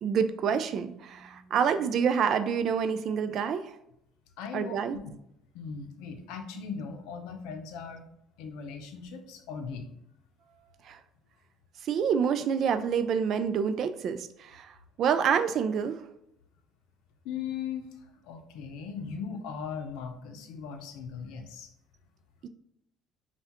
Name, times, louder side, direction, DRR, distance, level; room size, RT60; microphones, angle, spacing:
voice 1, 0.0-3.8 4.5-5.0 10.8-11.0 11.8-16.0 22.4-22.5, right 7 dB, 55° right, 10 dB, 0.3 m, -27 dB
voice 2, 4.4-4.8 5.5-8.0 8.4-9.9 17.2-17.9 18.2-21.7, left 6 dB, 90° left, 6 dB, 0.5 m, -38 dB
5.5 x 2.3 x 2.9 m, 0.76 s
cardioid pair, 125°, 0 cm